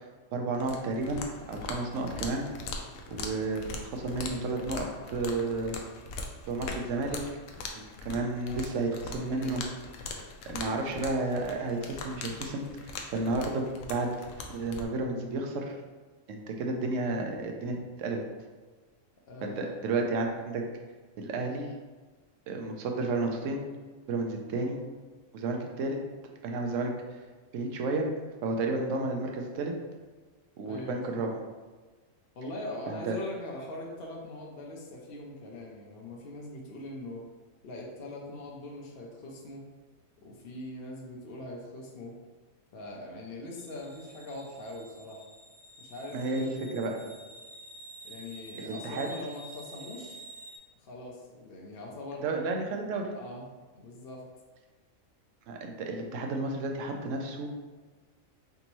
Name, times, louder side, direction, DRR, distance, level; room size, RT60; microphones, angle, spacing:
voice 1, 0.3-1.2 1.5-2.4 3.1-5.7 6.5-7.2 7.7-9.6 10.5-14.1 14.5-15.8 16.3-18.2 19.4-20.6 21.2-21.7 22.5-23.6 24.1-24.8 25.3-26.0 26.4-26.9 27.5-28.1 28.4-29.7 30.6-31.3 32.9-33.2 46.1-46.9 48.6-49.1 52.2-53.1 55.5-57.5, right 3 dB, 70° right, 2 dB, 0.9 m, -32 dB
sound 1, 0.5-14.9, left 3 dB, 90° left, 1.0 m, -41 dB
voice 2, 9.1-9.5 19.3-19.7 30.6-31.2 32.4-37.2 37.6-39.6 40.2-42.2 42.7-45.2 45.8-47.1 48.0-50.2 50.8-52.2 53.1-53.5 53.7-54.3, left 1 dB, 55° left, -2 dB, 0.7 m, -42 dB
sound 2, 43.5-50.6, right 1 dB, 25° right, 0.9 m, -49 dB
4.0 x 3.4 x 3.0 m, 1.3 s
omnidirectional pair, 1.4 m